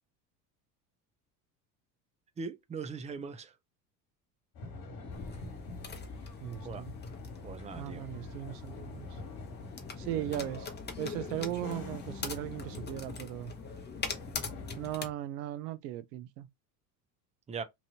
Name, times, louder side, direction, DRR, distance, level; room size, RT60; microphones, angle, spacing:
voice 1, 2.4-3.5 6.6-6.8 7.4-8.0 17.5-17.6, right 5 dB, 15° right, 0.4 m, -40 dB
sound 1, 4.5-15.1, left 3 dB, 45° left, 1.5 m, -46 dB
sound 2, 5.1-15.0, left 4 dB, 20° left, 0.8 m, -43 dB
voice 2, 6.4-6.9 7.8-9.2 10.0-10.7 11.0-13.5 14.8-16.5, right 14 dB, 70° right, 0.6 m, -38 dB
3.0 x 2.6 x 2.7 m
hypercardioid pair, 75°, 49 cm